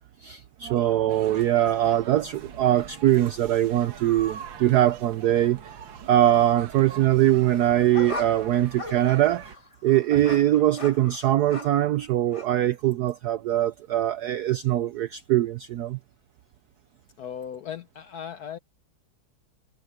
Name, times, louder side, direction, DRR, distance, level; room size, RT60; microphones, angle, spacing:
voice 1, 0.2-5.6 6.1-9.4 9.8-16.0, right 13 dB, 85° right, 0.8 m, -22 dB
sound 1, 1.1-9.6, right 7 dB, 65° right, 2.0 m, -43 dB
sound 2, 7.5-11.9 12.3-12.5, left 3 dB, 25° left, 0.7 m, -39 dB
voice 2, 17.2-18.6, left 8 dB, 70° left, 0.9 m, -37 dB
omnidirectional pair, 2.4 m